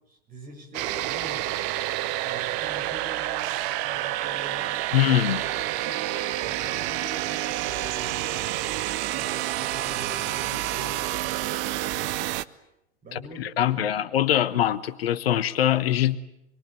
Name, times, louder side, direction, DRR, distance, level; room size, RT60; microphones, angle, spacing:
voice 1, 0.1-1.8 2.2-4.8 5.2-8.6 9.1-11.8 13.0-14.0, right 2 dB, 25° right, 4 dB, 7.3 m, -43 dB
sound 1, 0.7-12.4, right 15 dB, 45° right, 1.0 m, -29 dB
voice 2, 4.9-5.4 13.1-16.2, left 12 dB, 65° left, 15 dB, 1.1 m, -23 dB
26.5 x 22.0 x 9.1 m, 0.83 s
figure-of-eight pair, 95°, 32 cm